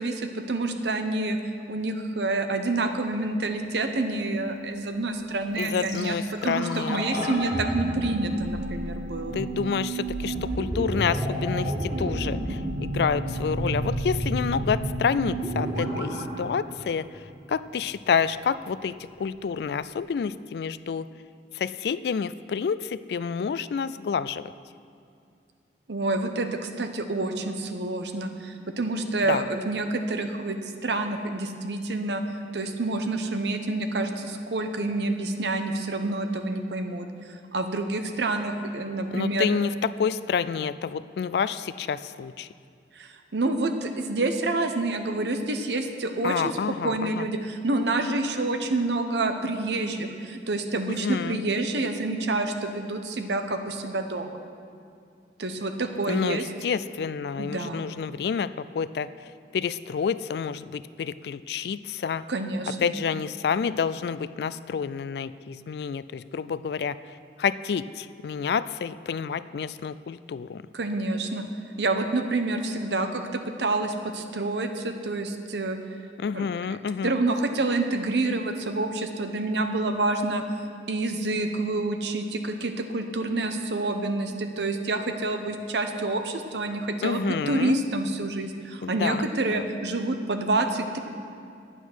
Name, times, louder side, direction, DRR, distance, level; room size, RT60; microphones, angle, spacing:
voice 1, 0.0-1.4 1.7-6.1 6.4-9.4 25.9-30.6 30.8-32.2 32.5-37.1 37.5-39.5 43.0-46.5 46.8-54.4 55.4-56.4 57.4-57.9 62.3-62.9 70.7-71.4 71.8-75.8 76.3-76.4 77.0-80.4 80.9-91.0, right 2 dB, 75° right, 6 dB, 0.9 m, -28 dB
voice 2, 5.6-7.5 9.3-21.1 21.5-24.5 29.3-29.5 39.1-42.5 46.2-47.3 50.9-51.4 56.1-62.2 62.8-67.0 67.4-70.6 76.2-77.2 87.0-87.8 88.8-89.7, left 6 dB, 65° left, 15 dB, 0.3 m, -29 dB
sound 1, 5.6-17.6 17.8-17.9, right 1 dB, 25° right, 1.6 m, -31 dB
10.0 x 9.1 x 6.2 m, 2.4 s
head